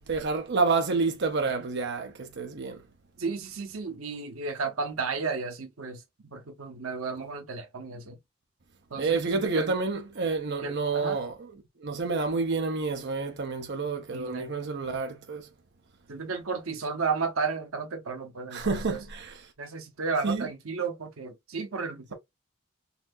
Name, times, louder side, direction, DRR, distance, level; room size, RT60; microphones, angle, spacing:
voice 1, 0.1-2.8 9.0-11.3 11.8-15.5 18.5-19.5 20.2-20.5, right 4 dB, 60° right, 0.8 m, -29 dB
voice 2, 3.2-6.0 6.3-8.2 8.9-9.7 10.6-11.2 14.1-14.5 16.1-19.0 19.6-22.1, right 4 dB, 85° right, 0.8 m, -33 dB
4.1 x 2.7 x 2.5 m
head